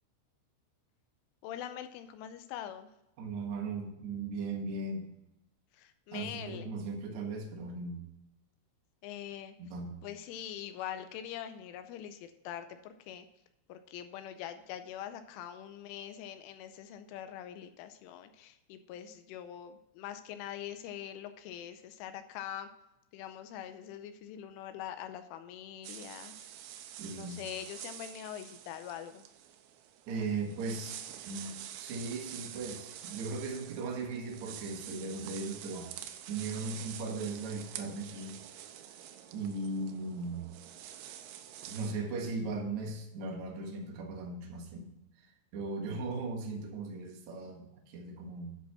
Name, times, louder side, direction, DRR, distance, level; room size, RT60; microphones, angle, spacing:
voice 1, 1.4-2.9 5.7-6.7 9.0-9.6 10.0-13.3 13.7-22.7 23.1-26.5 26.9-29.2, left 10 dB, 80° left, 9 dB, 2.9 m, -43 dB
voice 2, 3.2-5.1 6.1-8.0 9.6-10.0 27.0-27.4 30.1-31.0 31.3-36.0 36.3-38.4 39.3-40.5 41.7-44.9 45.2-45.3 45.5-48.5, right 3 dB, 70° right, -1 dB, 1.7 m, -38 dB
sound 1, 25.8-41.9, right 10 dB, 85° right, 2.6 m, -47 dB
10.5 x 5.1 x 6.2 m, 0.87 s
omnidirectional pair, 6.0 m